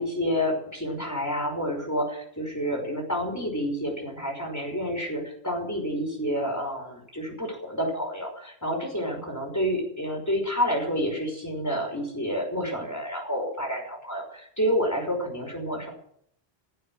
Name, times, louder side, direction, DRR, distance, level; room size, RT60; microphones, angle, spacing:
voice 1, 0.0-15.9, equal, 15° left, 1 dB, 5.7 m, -29 dB
17.5 x 8.4 x 9.3 m, 0.69 s
omnidirectional pair, 1.1 m